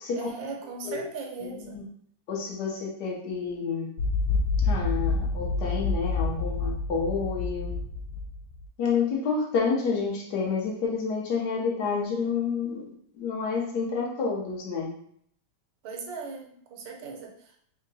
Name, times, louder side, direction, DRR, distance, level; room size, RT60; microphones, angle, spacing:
voice 1, 0.2-1.9 15.8-17.6, right 4 dB, 70° right, 1 dB, 1.3 m, -38 dB
voice 2, 1.4-1.9 2.3-3.9 4.6-7.7 8.8-12.8 13.2-14.9, left 5 dB, 65° left, -1 dB, 1.2 m, -29 dB
sound 1, 4.0-8.7, left 3 dB, 80° left, 0.9 m, -28 dB
3.7 x 2.2 x 3.9 m, 0.64 s
omnidirectional pair, 2.3 m